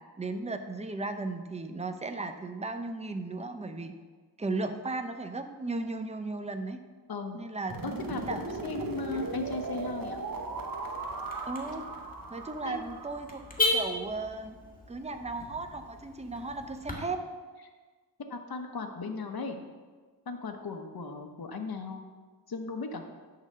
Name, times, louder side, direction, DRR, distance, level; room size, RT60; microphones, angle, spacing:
voice 1, 0.2-3.9 4.4-6.8 7.3-7.8 8.3-8.4 11.4-11.8 12.3-13.4 13.7-14.6 14.9-17.2, right 3 dB, 15° right, 7 dB, 0.7 m, -35 dB
sound 1, 7.7-13.6, right 3 dB, 50° right, 1.1 m, -38 dB
voice 2, 7.8-10.2 12.6-12.8 18.3-19.6 20.3-22.0 22.5-23.0, left 3 dB, 60° left, 4 dB, 1.0 m, -36 dB
Car / Alarm, 7.8-16.9, left 2 dB, 20° left, 1.9 m, -37 dB
10.5 x 4.0 x 6.6 m, 1.4 s
wide cardioid pair, 70°, 42 cm